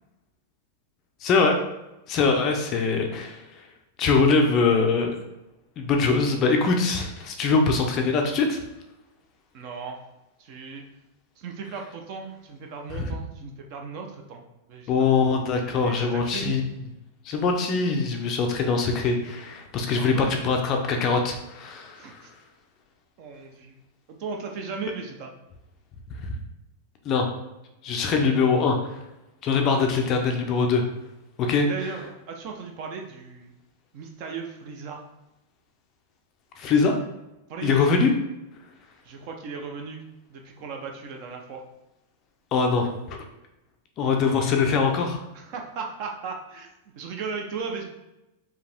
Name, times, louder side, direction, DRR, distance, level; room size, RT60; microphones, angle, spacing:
voice 1, 1.2-1.6 2.1-3.4 4.0-5.2 5.8-8.6 12.9-13.1 14.9-16.6 17.2-22.2 26.2-26.3 27.1-27.3 27.8-29.0 29.4-30.8 31.4-31.7 36.6-37.0 37.6-38.1 42.5-43.2 44.0-45.2, left 4 dB, 25° left, 3 dB, 0.5 m, -23 dB
voice 2, 9.5-10.0 10.4-10.8 11.4-14.4 14.7-15.1 15.8-16.6 20.0-20.3 22.0-22.3 23.2-23.8 24.1-25.3 31.6-33.5 33.9-35.0 37.5-38.0 39.0-40.0 40.3-41.6 45.3-47.8, right 5 dB, 35° right, 3 dB, 0.6 m, -36 dB
4.7 x 2.8 x 3.4 m, 0.95 s
supercardioid pair, 170°, 0 cm